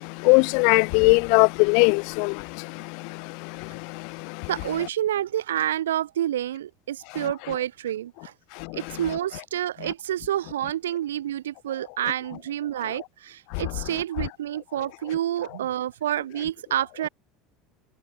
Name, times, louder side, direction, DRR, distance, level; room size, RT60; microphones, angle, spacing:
voice 1, 0.3-2.3, left 38 dB, 60° left, 0.6 m, -18 dB
voice 2, 4.5-8.3 8.7-17.1, right 11 dB, 70° right, 2.3 m, -28 dB
figure-of-eight pair, 70°, 0 cm